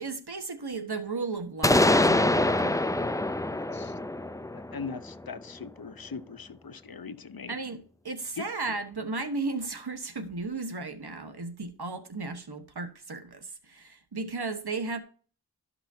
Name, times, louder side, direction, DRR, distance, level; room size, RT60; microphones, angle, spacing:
voice 1, 0.0-2.8 7.5-15.0, right 3 dB, 75° right, 1.3 m, -35 dB
sound 1, 1.6-5.4, left 1 dB, 10° left, 0.5 m, -25 dB
voice 2, 3.5-3.9 4.5-7.6 8.4-8.5, left 5 dB, 60° left, 0.8 m, -40 dB
13.0 x 5.9 x 2.7 m
wide cardioid pair, 40°, 39 cm